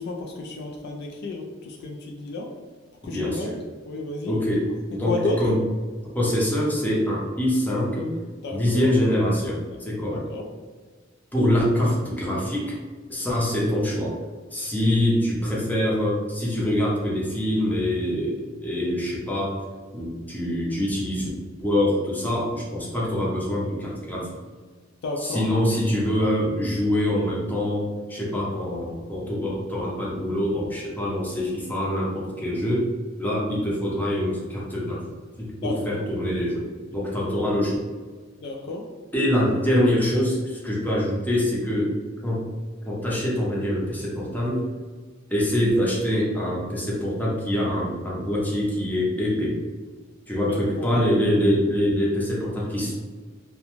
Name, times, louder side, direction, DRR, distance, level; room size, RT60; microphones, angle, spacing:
voice 1, 0.0-2.4 3.0-3.5 3.9-4.4 5.0-5.4 8.4-9.0 9.7-9.8 10.1-10.4 25.0-25.5 35.6-36.0 38.4-38.8 50.4-51.1, left 2 dB, 55° left, 0 dB, 0.3 m, -31 dB
voice 2, 3.0-3.5 4.3-5.6 6.1-8.1 8.5-10.2 11.3-12.8 13.1-14.1 14.5-19.5 19.9-21.3 21.6-24.3 25.2-32.9 33.2-35.0 35.4-37.8 39.1-41.9 42.2-42.5 42.8-44.6 45.3-49.6 50.3-52.9, left 1 dB, 10° left, -5 dB, 0.6 m, -24 dB
2.5 x 2.1 x 2.9 m, 1.4 s
head